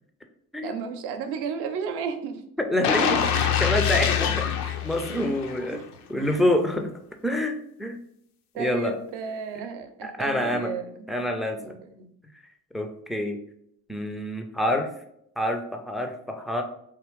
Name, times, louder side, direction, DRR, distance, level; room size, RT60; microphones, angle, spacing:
voice 1, 0.6-2.4 5.7-5.9 8.5-11.2 11.6-12.1, right 6 dB, 60° right, 7 dB, 0.7 m, -33 dB
voice 2, 2.6-5.8 6.1-6.9 7.2-8.0 8.6-9.0 10.0-10.7 11.1-11.8 12.7-13.4 13.9-14.9 15.4-16.6, left 1 dB, ahead, 5 dB, 0.3 m, -27 dB
sound 1, 2.8-5.8 6.2-6.4, left 8 dB, 80° left, 0.5 m, -25 dB
3.5 x 2.9 x 3.1 m, 0.72 s
hypercardioid pair, 50°, 45 cm